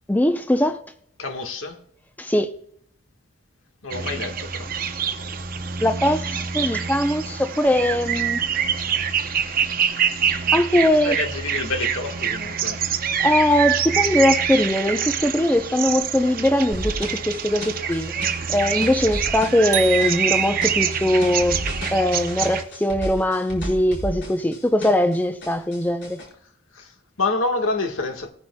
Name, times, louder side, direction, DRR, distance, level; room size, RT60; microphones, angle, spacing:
voice 1, 0.1-0.8 2.2-2.5 5.8-8.4 10.5-11.2 13.2-18.1 18.5-21.6 21.9-26.2, left 1 dB, 10° left, 0.6 m, -21 dB
voice 2, 1.2-1.8 3.8-4.7 11.0-12.8 26.7-28.3, left 3 dB, 75° left, 1.6 m, -27 dB
sound 1, 3.9-22.6, right 7 dB, 45° right, 0.8 m, -25 dB
sound 2, 16.7-25.2 25.4-26.3, equal, 55° left, 4.9 m, -33 dB
sound 3, 19.7-21.1, right 10 dB, 15° right, 1.4 m, -31 dB
19.0 x 10.0 x 2.3 m
head